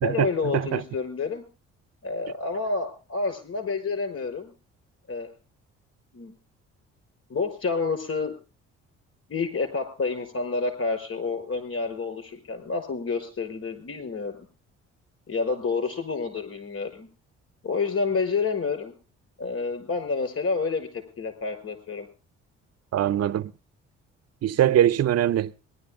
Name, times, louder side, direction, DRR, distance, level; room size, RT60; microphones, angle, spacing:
voice 1, 0.0-1.5 2.0-4.5 5.1-5.3 6.1-6.3 7.3-8.3 9.3-14.4 15.3-17.1 17.6-19.0 19.4-20.9 21.2-22.1, left 4 dB, 50° left, 5.3 m, -29 dB
voice 2, 22.9-23.5 24.4-25.5, right 11 dB, 55° right, 0.8 m, -22 dB
19.0 x 11.5 x 3.7 m
supercardioid pair, 65°, 30 cm